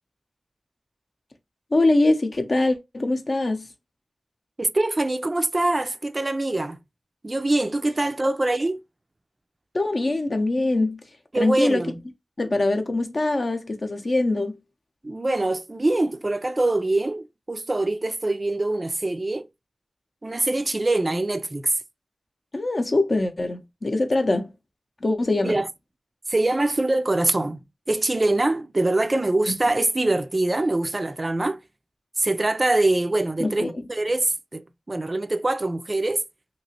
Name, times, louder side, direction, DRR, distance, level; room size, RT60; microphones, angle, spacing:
voice 1, 1.7-3.7 9.7-11.0 11.3-11.8 12.4-14.6 22.5-24.5 25.0-25.6 33.4-33.8, left 2 dB, 50° left, 0.6 m, -23 dB
voice 2, 4.6-6.8 7.2-8.8 11.3-12.0 15.0-19.5 20.2-21.7 25.4-25.7 26.3-31.6 32.2-36.2, right 2 dB, 35° right, 0.3 m, -24 dB
2.9 x 2.8 x 2.8 m
wide cardioid pair, 75°, 0 cm